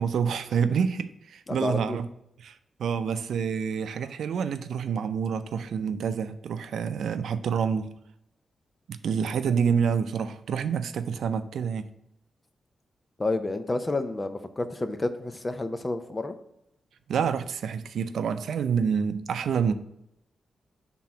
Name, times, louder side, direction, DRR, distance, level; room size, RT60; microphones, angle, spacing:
voice 1, 0.0-2.1 2.4-7.9 8.9-11.9 17.1-19.7, right 7 dB, 85° right, 0.4 m, -27 dB
voice 2, 1.5-2.0 13.2-16.3, left 2 dB, 20° left, 0.5 m, -30 dB
5.9 x 3.7 x 5.7 m
wide cardioid pair, 165°, 0 cm